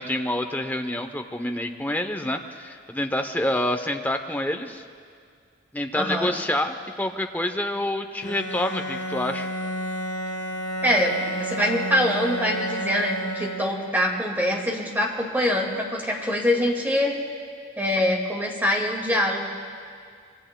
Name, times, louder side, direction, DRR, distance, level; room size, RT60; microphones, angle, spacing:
voice 1, 0.0-4.8 5.7-9.5, left 1 dB, 10° left, 6 dB, 0.7 m, -27 dB
voice 2, 5.9-6.3 10.8-17.2 17.8-19.4, left 1 dB, 10° right, 0 dB, 2.0 m, -24 dB
Bowed string instrument, 8.2-14.0, right 1 dB, 70° left, 1.4 m, -31 dB
25.5 x 23.5 x 2.3 m, 2.2 s
head